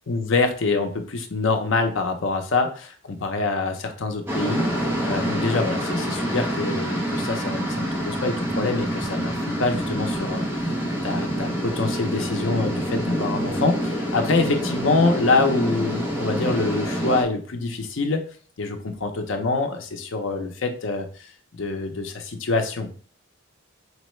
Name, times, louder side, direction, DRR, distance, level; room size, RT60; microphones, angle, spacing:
voice 1, 0.1-10.8 11.0-18.2 18.6-23.0, left 3 dB, 70° left, 5 dB, 0.6 m, -25 dB
sound 1, 4.3-17.2, equal, 10° right, 0.7 m, -27 dB
4.5 x 2.1 x 3.1 m, 0.42 s
head